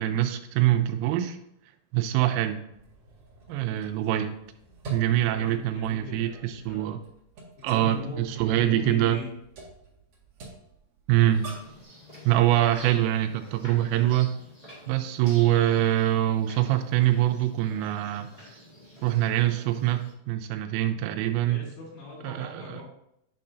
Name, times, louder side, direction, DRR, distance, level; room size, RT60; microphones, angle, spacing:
voice 1, 0.0-1.4 1.9-2.6 3.5-4.3 4.9-7.0 7.6-9.2 11.1-11.4 12.2-14.4 14.9-18.3 19.0-21.7 22.2-22.8, right 13 dB, 85° right, 7 dB, 3.2 m, -24 dB
sound 1, 2.7-11.8, right 2 dB, 60° right, 1.5 m, -47 dB
voice 2, 5.1-7.0 7.6-9.3 21.4-22.8, left 3 dB, 85° left, -3 dB, 5.0 m, -41 dB
sound 2, 11.3-20.1, left 1 dB, 10° left, 1.8 m, -49 dB
9.4 x 6.6 x 2.7 m, 0.78 s
omnidirectional pair, 5.9 m